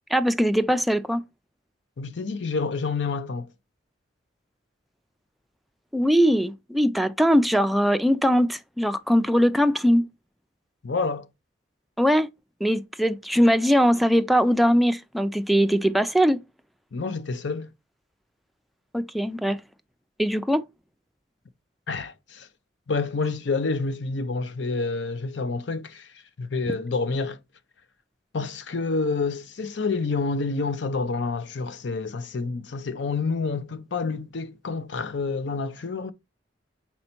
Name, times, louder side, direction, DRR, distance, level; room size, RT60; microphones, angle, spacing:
voice 1, 0.1-1.2 5.9-10.1 12.0-12.3 12.6-16.4 18.9-19.6 20.2-20.6, equal, ahead, 0.4 m, -21 dB
voice 2, 2.0-3.5 10.8-11.3 16.9-17.7 21.9-22.5 22.9-26.1 26.4-27.4 28.3-36.1, left 4 dB, 70° left, 0.6 m, -28 dB
5.4 x 4.4 x 4.3 m
head